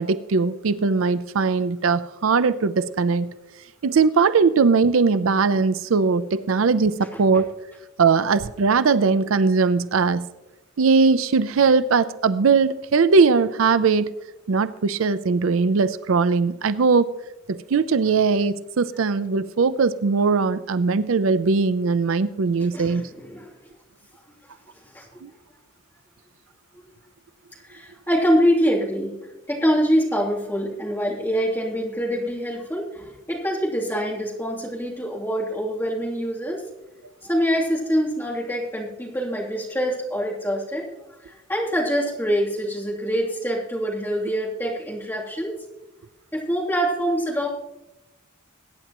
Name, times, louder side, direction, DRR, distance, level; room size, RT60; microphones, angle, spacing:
voice 1, 0.0-3.3 3.8-7.5 8.0-10.3 10.8-14.1 14.5-17.1 17.5-23.1 25.2-25.3, right 4 dB, 80° right, 14 dB, 0.5 m, -20 dB
voice 2, 7.1-7.4 22.6-23.5 24.9-25.2 27.6-29.2 29.5-36.6 37.2-40.9 41.2-45.6 46.3-47.5, equal, 10° left, -5 dB, 2.9 m, -25 dB
22.0 x 9.3 x 3.0 m, 1.0 s
head